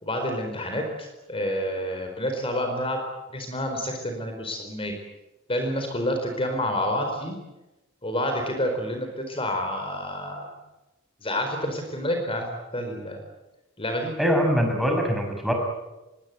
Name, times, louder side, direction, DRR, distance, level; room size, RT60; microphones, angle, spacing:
voice 1, 0.0-3.0 3.3-4.9 5.5-7.4 8.0-10.5 11.2-13.2 13.8-14.1, equal, 25° left, 5 dB, 4.3 m, -28 dB
voice 2, 14.2-15.5, equal, ahead, 3 dB, 5.6 m, -23 dB
25.5 x 22.5 x 9.5 m, 1.0 s
head